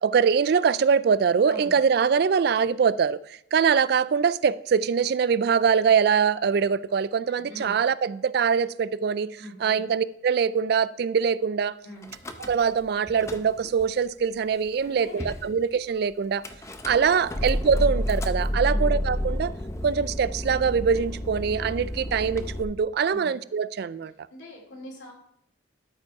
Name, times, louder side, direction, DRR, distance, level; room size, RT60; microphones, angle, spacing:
voice 1, 0.0-3.2 3.5-11.7 12.4-16.4 16.8-19.5 19.8-24.1, right 6 dB, 55° right, 0.3 m, -23 dB
voice 2, 1.4-1.8 7.2-7.7 9.4-9.8 11.8-12.1 14.8-15.3 18.6-18.9 23.1-23.3 24.3-25.1, equal, 70° left, 2.5 m, -43 dB
Car / Engine starting / Idling, 12.0-12.8 13.1-13.9 14.5-14.6 14.8-14.9 15.2-15.5 16.4-22.6, equal, 15° left, 0.6 m, -30 dB
12.5 x 5.3 x 4.7 m
head